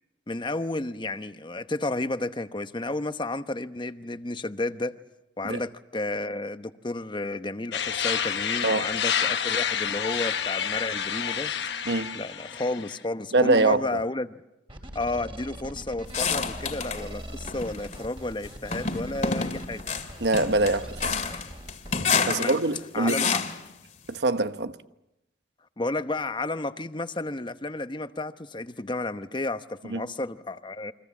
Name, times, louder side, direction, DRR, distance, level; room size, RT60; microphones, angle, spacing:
voice 1, 0.3-5.0 5.4-11.5 12.1-14.4 14.9-19.8 21.2-21.5 22.2-22.6 22.9-23.4 25.8-30.9, left 2 dB, 25° left, 0.9 m, -32 dB
sound 1, 7.7-13.0, left 8 dB, 80° left, 1.0 m, -29 dB
voice 2, 11.9-12.2 13.3-14.0 20.2-21.2 22.3-23.3 24.1-24.7 29.9-30.0, right 2 dB, 70° right, 1.1 m, -24 dB
sound 2, 14.7-22.1, right 1 dB, 30° right, 3.5 m, -41 dB
sound 3, 16.1-17.1 17.5-18.0 18.7-23.7, left 5 dB, 45° left, 2.2 m, -29 dB
29.0 x 24.0 x 7.2 m
head